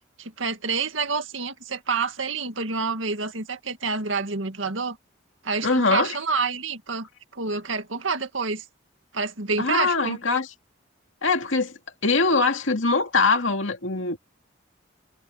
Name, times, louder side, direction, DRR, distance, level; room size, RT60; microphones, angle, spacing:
voice 1, 0.2-5.0 5.4-7.1 7.3-8.6 9.1-10.2, right 4 dB, 85° right, 2.0 m, -28 dB
voice 2, 5.6-6.2 9.6-10.5 11.2-11.7 12.0-14.2, left 3 dB, 85° left, 2.3 m, -22 dB
head